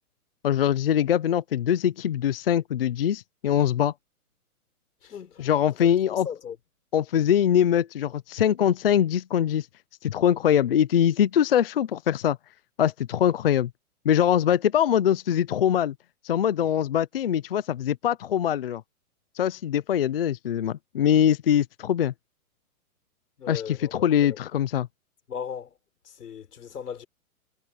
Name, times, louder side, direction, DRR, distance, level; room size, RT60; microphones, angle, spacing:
voice 1, 0.4-3.9 5.4-6.3 6.9-9.7 10.0-12.4 12.8-13.7 14.0-15.9 16.2-18.8 19.4-22.1 23.5-24.9, left 9 dB, 40° left, 0.5 m, -23 dB
voice 2, 5.0-6.6 23.4-24.4 25.3-25.7 26.0-27.1, left 7 dB, 90° left, 5.2 m, -38 dB
hypercardioid pair, 170°, 45 cm